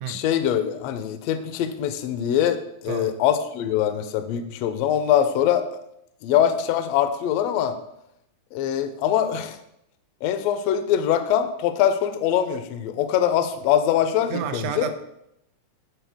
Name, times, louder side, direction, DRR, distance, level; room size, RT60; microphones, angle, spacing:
voice 1, 0.1-5.7 6.2-7.8 8.5-9.6 10.2-14.9, left 10 dB, 80° left, 9 dB, 1.5 m, -23 dB
voice 2, 14.3-14.9, right 9 dB, 80° right, 8 dB, 1.8 m, -30 dB
8.9 x 4.0 x 3.5 m, 0.80 s
omnidirectional pair, 3.4 m